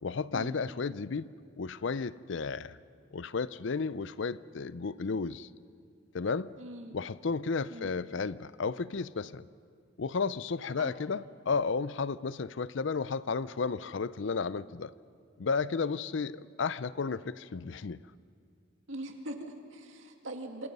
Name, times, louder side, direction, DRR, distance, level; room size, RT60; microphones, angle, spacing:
voice 1, 0.0-2.8 3.1-5.5 6.1-6.5 6.9-9.5 10.0-14.9 15.4-18.0, left 4 dB, 60° left, 17 dB, 0.5 m, -33 dB
voice 2, 6.6-6.9 7.7-7.9 10.8-10.9 18.9-20.7, right 1 dB, 65° right, 4 dB, 2.3 m, -41 dB
27.5 x 26.5 x 5.4 m, 2.3 s
head